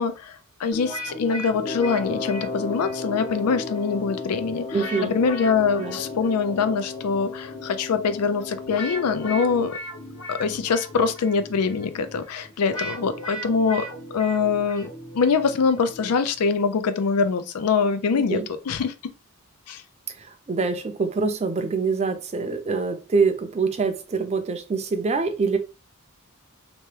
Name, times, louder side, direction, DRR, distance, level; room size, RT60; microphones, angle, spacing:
voice 1, 0.0-4.6 5.0-9.7 10.3-13.8 14.1-14.9 15.1-18.4 18.7-19.1 19.7-19.8, left 5 dB, 85° left, 0.4 m, -24 dB
sound 1, 0.7-16.6, left 1 dB, 65° left, 1.5 m, -38 dB
Wind instrument woodwind instrument, 1.6-9.7, left 4 dB, 35° left, 0.6 m, -35 dB
voice 2, 4.7-5.1 5.8-6.0 18.1-18.5 20.1-25.6, right 4 dB, 30° right, 0.4 m, -25 dB
2.9 x 2.2 x 3.1 m
head